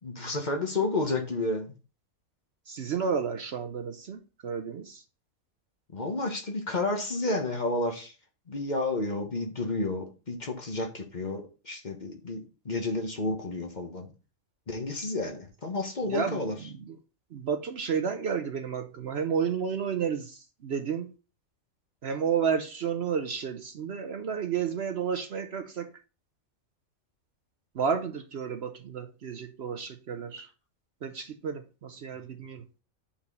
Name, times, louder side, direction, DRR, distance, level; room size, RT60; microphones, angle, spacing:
voice 1, 0.0-1.7 5.9-8.1 8.5-14.1 14.7-16.5, left 2 dB, 35° left, 1.1 m, -31 dB
voice 2, 2.7-5.0 16.1-17.0 17.3-21.1 22.0-25.9 27.7-30.5 31.0-32.6, right 7 dB, 60° right, 0.8 m, -31 dB
5.4 x 4.2 x 5.3 m
omnidirectional pair, 1.4 m